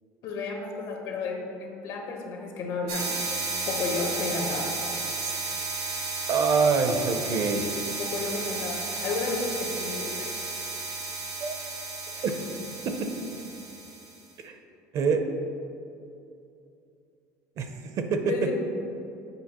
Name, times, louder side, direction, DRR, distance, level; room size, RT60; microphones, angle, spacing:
voice 1, 0.2-3.1 3.7-4.8 8.0-10.5 12.1-12.3 18.2-18.5, left 4 dB, 65° left, 2 dB, 1.0 m, -32 dB
sound 1, 2.9-14.2, right 3 dB, 85° right, 1.3 m, -33 dB
voice 2, 6.3-7.7 11.4-11.6 12.2-12.4 12.8-13.1 14.4-14.6 14.9-15.3 17.6-17.7 18.0-18.5, right 5 dB, 50° right, 6 dB, 0.5 m, -25 dB
8.1 x 4.5 x 2.9 m, 2.7 s
cardioid pair, 115°, 7 cm